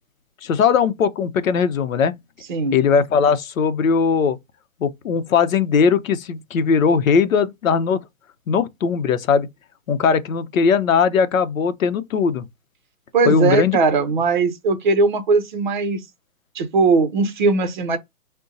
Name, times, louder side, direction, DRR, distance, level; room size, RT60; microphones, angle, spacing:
voice 1, 0.4-2.2 2.7-4.4 4.8-8.0 8.5-9.5 9.9-12.5 13.3-13.8, left 6 dB, 65° left, 0.7 m, -19 dB
voice 2, 13.1-16.0 16.5-18.0, right 4 dB, 35° right, 0.7 m, -19 dB
2.6 x 2.2 x 3.7 m
hypercardioid pair, 155°, 43 cm